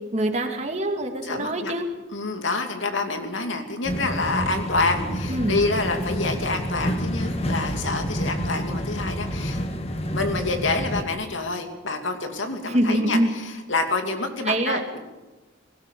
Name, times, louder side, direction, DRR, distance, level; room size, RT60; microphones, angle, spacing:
voice 1, 0.1-1.9 5.3-5.6 12.6-13.3 14.4-15.0, right 1 dB, 35° right, 4 dB, 2.5 m, -24 dB
voice 2, 1.2-1.7 2.1-9.6 10.1-15.0, left 3 dB, 80° left, 5 dB, 2.7 m, -27 dB
sound 1, 3.8-11.0, equal, 30° left, 1.6 m, -28 dB
19.5 x 17.5 x 8.5 m, 1.1 s
head